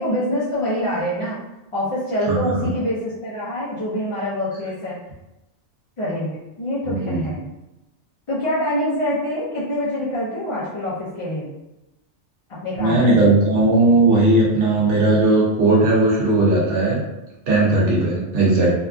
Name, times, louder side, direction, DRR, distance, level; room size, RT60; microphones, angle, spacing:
voice 1, 0.0-1.4 1.7-5.0 6.0-7.5 8.3-11.5 12.6-13.4, equal, 45° left, -9 dB, 0.4 m, -25 dB
voice 2, 2.3-2.7 6.8-7.2 12.8-17.0 17.5-18.7, right 2 dB, 75° right, -5 dB, 1.0 m, -17 dB
2.8 x 2.3 x 2.4 m, 0.95 s
omnidirectional pair, 1.2 m